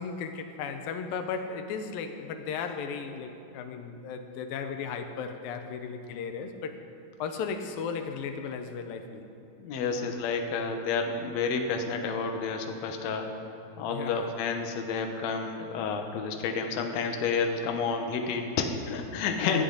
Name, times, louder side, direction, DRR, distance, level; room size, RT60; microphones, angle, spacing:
voice 1, 0.0-6.7 7.2-9.3 13.9-14.3 19.4-19.6, left 6 dB, 85° left, 7 dB, 2.6 m, -35 dB
voice 2, 9.6-13.3 13.8-19.6, left 5 dB, 65° left, 3 dB, 1.9 m, -30 dB
18.5 x 11.5 x 4.0 m, 2.8 s
omnidirectional pair, 4.0 m